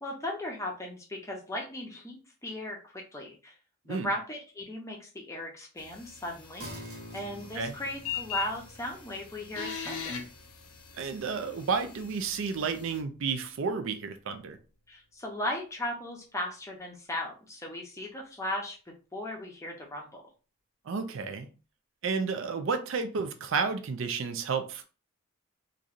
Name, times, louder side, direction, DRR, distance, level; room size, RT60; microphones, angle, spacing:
voice 1, 0.0-3.6 3.8-10.3 14.9-20.2, left 1 dB, 15° left, 0 dB, 0.6 m, -37 dB
sound 1, 5.8-13.0, left 7 dB, 80° left, 0.7 m, -41 dB
sound 2, 6.6-13.6 14.0-14.1, equal, 80° right, 1.3 m, -49 dB
voice 2, 11.0-14.6 20.9-21.5 22.0-24.8, right 5 dB, 65° right, 9 dB, 0.4 m, -31 dB
3.0 x 2.5 x 2.4 m, 0.34 s
head